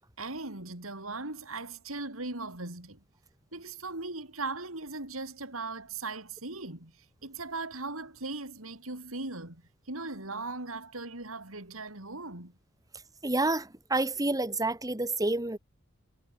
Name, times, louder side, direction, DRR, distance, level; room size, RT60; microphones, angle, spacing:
voice 1, 0.2-3.0 3.5-6.9 7.2-9.6 9.9-12.5, right 3 dB, 85° right, 5.7 m, -38 dB
voice 2, 13.2-15.6, right 2 dB, 15° right, 2.1 m, -29 dB
head